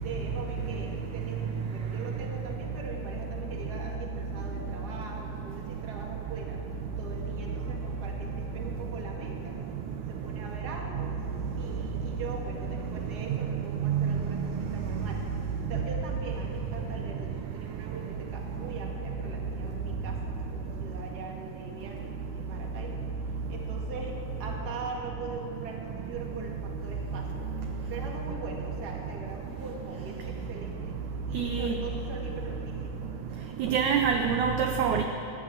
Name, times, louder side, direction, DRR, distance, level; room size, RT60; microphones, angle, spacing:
voice 1, 0.0-6.6 7.0-9.6 10.1-11.2 11.5-15.2 15.7-23.0 23.5-27.5 27.9-31.0 31.3-33.1, right 3 dB, 40° right, 1 dB, 1.7 m, -42 dB
voice 2, 13.8-14.1 31.3-31.7 33.6-35.0, right 7 dB, 80° right, 5 dB, 1.7 m, -25 dB
16.5 x 11.0 x 7.4 m, 2.8 s
omnidirectional pair, 4.2 m